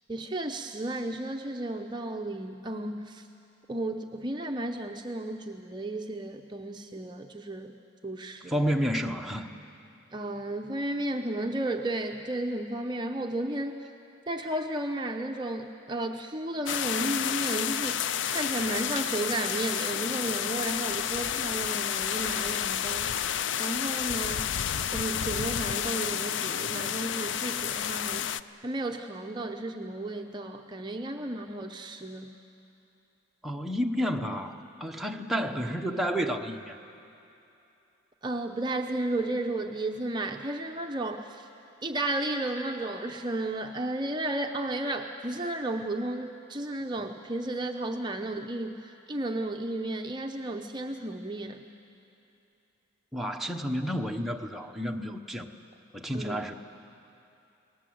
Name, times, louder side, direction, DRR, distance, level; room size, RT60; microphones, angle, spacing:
voice 1, 0.1-3.2 3.7-7.7 8.0-8.6 10.1-13.9 14.3-18.0 18.3-24.5 24.9-28.3 28.6-32.3 38.2-41.5 41.8-51.7 56.1-56.5, right 1 dB, 20° right, 3 dB, 0.7 m, -33 dB
voice 2, 8.5-9.5 33.4-36.8 53.1-55.5 55.9-56.5, equal, ahead, 1 dB, 0.9 m, -30 dB
sound 1, 16.7-28.4, left 9 dB, 65° left, 0.5 m, -30 dB
30.0 x 19.0 x 7.8 m, 2.8 s
head